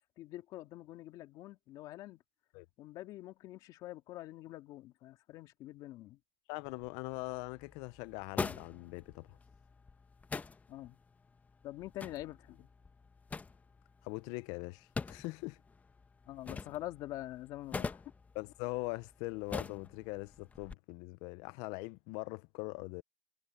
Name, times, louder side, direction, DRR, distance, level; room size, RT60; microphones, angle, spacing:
voice 1, 0.2-2.2 2.8-6.2 10.7-11.0 11.6-12.7 16.3-18.0, left 15 dB, 75° left, 2.4 m, -45 dB
voice 2, 6.5-9.3 14.0-15.6 18.3-23.0, left 24 dB, 90° left, 0.5 m, -42 dB
sound 1, 6.6-20.7, left 4 dB, 25° left, 1.1 m, -45 dB
supercardioid pair, 95°, 7 cm